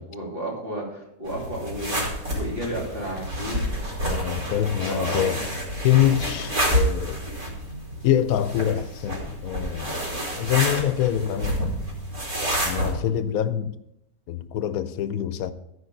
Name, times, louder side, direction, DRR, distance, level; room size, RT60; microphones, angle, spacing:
voice 1, 0.1-3.7 4.4-5.4, right 1 dB, 40° right, 3.3 m, -32 dB
sound 1, 1.3-12.9, equal, 85° right, 3.4 m, -29 dB
voice 2, 4.1-5.4 5.8-7.2 8.0-10.0 10.4-11.8 12.6-13.8 14.3-15.5, left 11 dB, 85° left, 1.1 m, -25 dB
14.0 x 5.1 x 5.2 m
omnidirectional pair, 1.5 m